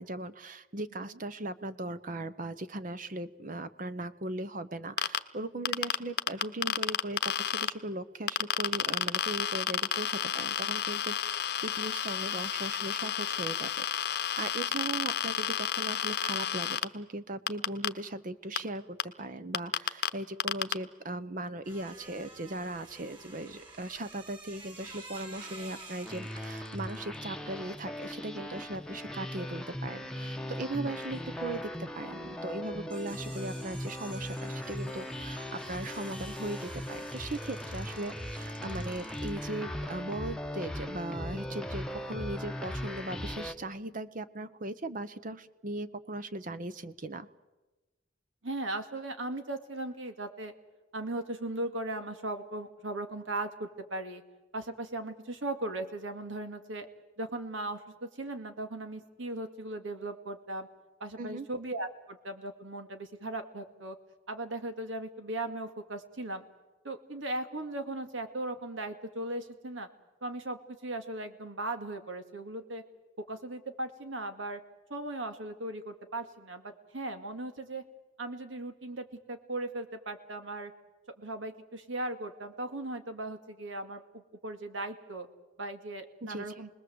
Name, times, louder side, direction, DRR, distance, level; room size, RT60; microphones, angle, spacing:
voice 1, 0.0-47.3 61.2-61.5 86.2-86.5, right 2 dB, 45° right, 12 dB, 0.9 m, -38 dB
sound 1, 5.0-5.2 5.7-7.7 8.3-16.8 17.5-17.9 18.6-18.7 19.0-19.1 19.5-20.1 20.4-20.7, left 9 dB, 60° left, 1.0 m, -30 dB
sound 2, 21.6-29.8 30.0-39.5, right 2 dB, 25° right, 3.7 m, -51 dB
sound 3, 26.0-43.5, left 1 dB, 5° left, 1.0 m, -39 dB
voice 2, 48.4-50.5 50.9-54.2 54.5-56.9 57.2-60.7 61.0-64.0 64.3-66.4 66.8-69.9 70.2-72.8 73.3-74.6 74.9-77.8 78.2-80.7 81.2-85.3 85.6-86.7, right 2 dB, 90° right, 7 dB, 2.3 m, -38 dB
29.0 x 20.5 x 7.9 m, 1.1 s
head